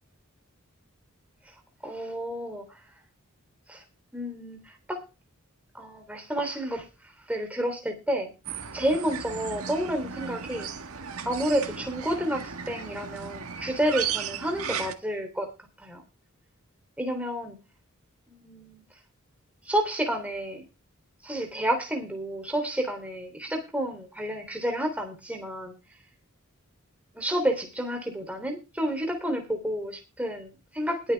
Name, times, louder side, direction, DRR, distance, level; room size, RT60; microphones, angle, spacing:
voice 1, 1.8-2.8 3.7-3.8 4.1-5.0 5.7-6.9 7.3-8.3 8.7-10.7 11.2-15.5 15.8-16.0 17.0-17.6 18.3-18.8 19.6-20.6 21.2-25.8 27.1-31.1, right 1 dB, 5° right, 3 dB, 3.2 m, -30 dB
sound 1, 8.4-14.9, right 7 dB, 85° right, 1.7 m, -36 dB
20.5 x 8.6 x 3.5 m, 0.29 s
head